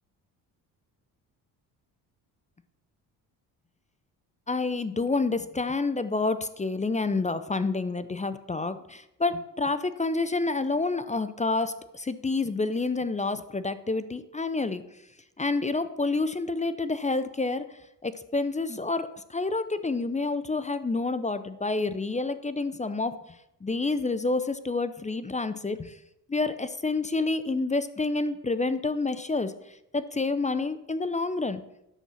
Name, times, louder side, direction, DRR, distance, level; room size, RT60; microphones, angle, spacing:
voice 1, 4.5-14.8 15.4-17.7 18.0-23.2 23.6-25.9 26.3-29.5 29.9-31.6, left 3 dB, 15° left, 13 dB, 0.6 m, -28 dB
10.0 x 7.1 x 5.5 m, 0.87 s
supercardioid pair, 75°, 44 cm